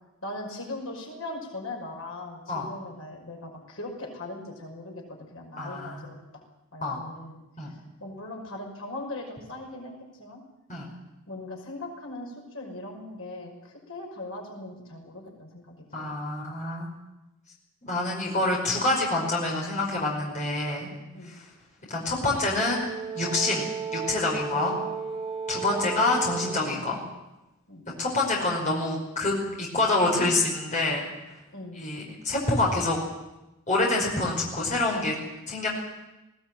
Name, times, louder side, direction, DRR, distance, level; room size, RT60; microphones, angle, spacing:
voice 1, 0.2-6.2 6.7-7.4 7.7-10.4 11.2-15.7 16.1-16.5 21.1-21.4 24.5-24.9 27.7-27.8 31.5-31.8, left 2 dB, 70° left, 0 dB, 5.8 m, -39 dB
voice 2, 5.6-6.1 6.8-7.0 7.6-7.7 10.7-10.9 15.9-16.9 17.9-20.9 21.3-21.5 21.9-22.9 23.1-24.8 25.5-27.0 28.0-31.0 31.8-33.0 33.7-35.2 35.5-35.7, left 2 dB, 35° left, -2 dB, 5.2 m, -26 dB
Brass instrument, 22.5-26.8, right 5 dB, 30° right, 2.6 m, -34 dB
20.5 x 18.0 x 9.1 m, 1.0 s
head